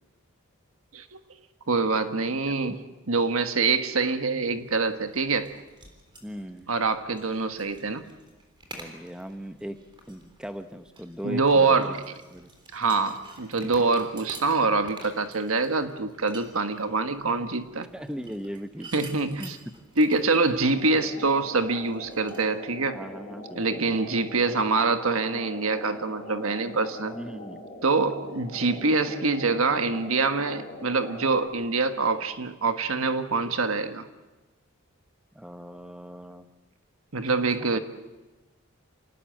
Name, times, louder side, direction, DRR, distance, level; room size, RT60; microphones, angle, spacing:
voice 1, 1.7-5.6 6.7-8.0 11.2-12.0 12.7-17.9 18.9-19.6 20.0-23.0 23.5-27.1 27.8-34.1 37.1-37.8, right 3 dB, 85° right, 8 dB, 1.5 m, -25 dB
sound 1, 4.5-22.4, right 2 dB, 25° right, 3.5 m, -50 dB
voice 2, 6.2-6.7 8.8-9.8 10.1-11.9 12.3-12.5 17.9-19.1 19.4-19.5 23.0-24.0 27.1-27.6 35.3-36.5 37.6-37.8, equal, 5° right, 9 dB, 1.0 m, -38 dB
sound 2, 20.6-31.5, left 1 dB, 35° left, 6.1 m, -42 dB
27.5 x 18.5 x 7.6 m, 1.1 s
head